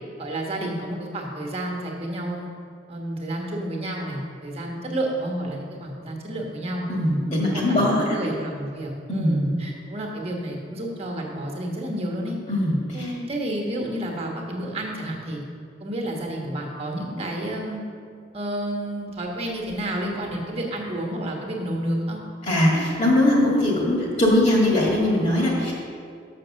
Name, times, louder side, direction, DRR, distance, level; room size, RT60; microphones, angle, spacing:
voice 1, 0.2-2.5 2.9-6.8 7.4-12.3 12.9-15.4 15.8-17.8 18.3-22.2, right 1 dB, 35° right, 0 dB, 1.3 m, -30 dB
voice 2, 6.9-8.2 9.1-9.5 12.5-13.1 22.4-25.7, left 1 dB, 40° left, -3 dB, 1.7 m, -21 dB
6.8 x 6.0 x 6.4 m, 2.3 s
head